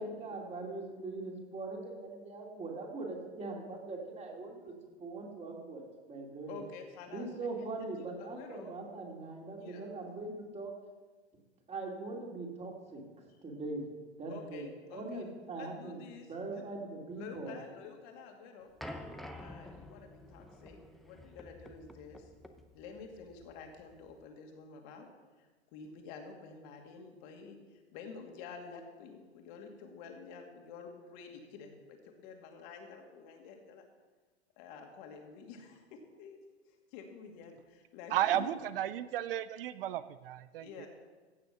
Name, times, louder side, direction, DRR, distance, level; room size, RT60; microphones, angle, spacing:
voice 1, 0.0-5.8 6.1-6.6 7.1-10.7 11.7-13.0 13.4-13.8 14.2-16.0 16.3-17.6, right 3 dB, 20° right, 0 dB, 2.8 m, -41 dB
voice 2, 6.5-7.3 7.6-7.7 8.0-8.7 9.6-9.8 13.3-13.4 14.3-15.3 15.6-16.7 17.2-18.7 19.4-20.8 21.0-22.3 22.7-25.1 25.4-33.9 34.6-36.4 36.9-38.5 40.6-40.9, left 5 dB, 45° left, 3 dB, 2.4 m, -49 dB
sound 1, 18.8-24.2, left 1 dB, ahead, 0.7 m, -49 dB
voice 3, 38.1-40.9, right 12 dB, 55° right, 15 dB, 0.6 m, -33 dB
16.0 x 6.8 x 5.9 m, 1.3 s
hypercardioid pair, 105°, 33 cm